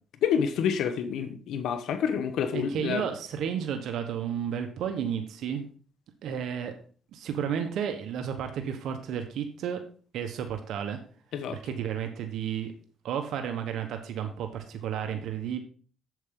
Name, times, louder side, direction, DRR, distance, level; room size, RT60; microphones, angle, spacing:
voice 1, 0.2-3.0 11.3-11.6, left 7 dB, 80° left, 9 dB, 1.0 m, -28 dB
voice 2, 2.5-5.6 6.2-6.7 7.1-9.8 10.1-11.0 11.5-12.7 13.0-15.6, right 8 dB, 80° right, 6 dB, 1.1 m, -32 dB
8.1 x 7.9 x 3.8 m, 0.41 s
cardioid pair, 90°, 0 cm